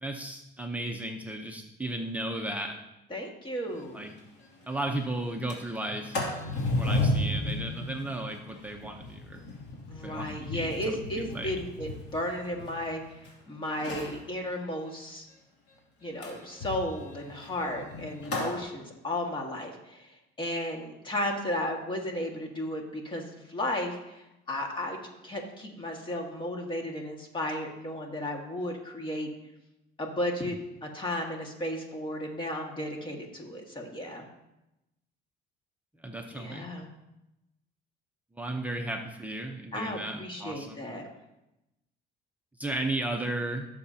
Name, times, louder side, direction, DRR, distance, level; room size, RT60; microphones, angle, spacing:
voice 1, 0.0-2.8 3.9-4.1 4.7-6.2 6.7-9.5 10.0-11.6 36.0-36.7 38.3-40.9 42.6-43.7, right 1 dB, 10° right, 1 dB, 0.8 m, -35 dB
voice 2, 3.1-4.1 9.9-13.0 13.5-15.3 16.0-20.1 20.4-25.0 25.2-29.3 30.0-34.3 36.3-36.9 39.7-41.1, left 1 dB, 25° left, 1 dB, 1.8 m, -34 dB
Sliding door, 3.8-3.9 4.2-4.3 4.6-4.9 5.3-13.3 13.7-14.2 16.2-18.6, left 2 dB, 65° left, 2.7 m, -34 dB
16.5 x 7.0 x 2.9 m, 0.92 s
cardioid pair, 120°, 20 cm